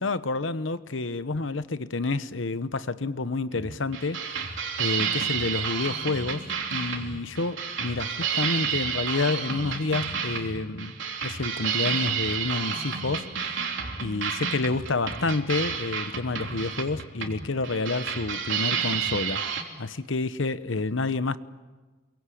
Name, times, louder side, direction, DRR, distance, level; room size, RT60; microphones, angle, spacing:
voice 1, 0.0-4.4 4.8-13.6 14.0-21.4, left 3 dB, 80° left, 1.0 m, -29 dB
sound 1, 3.5-19.6, right 7 dB, 75° right, 3.4 m, -30 dB
28.5 x 23.0 x 8.5 m
head